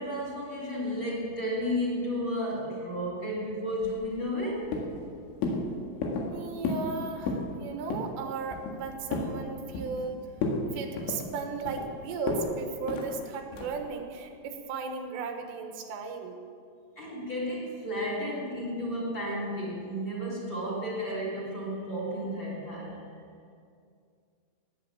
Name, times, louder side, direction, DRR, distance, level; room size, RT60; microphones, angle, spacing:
voice 1, 0.0-4.7 17.0-23.0, equal, 25° left, -4 dB, 3.6 m, -32 dB
sound 1, 3.8-4.4 4.7-5.1 5.4-5.6 6.0-6.3 6.6-6.9 7.2-7.5 7.9-8.1 8.5-9.3 9.7-10.1 10.4-10.6 11.0-11.9 12.3-12.5 12.9-13.1 13.5-13.8, left 3 dB, 80° left, 4.2 m, -32 dB
voice 2, 6.3-10.2 10.7-16.4, right 4 dB, 85° right, 4 dB, 3.9 m, -36 dB
17.0 x 10.0 x 7.4 m, 2.3 s
omnidirectional pair, 5.6 m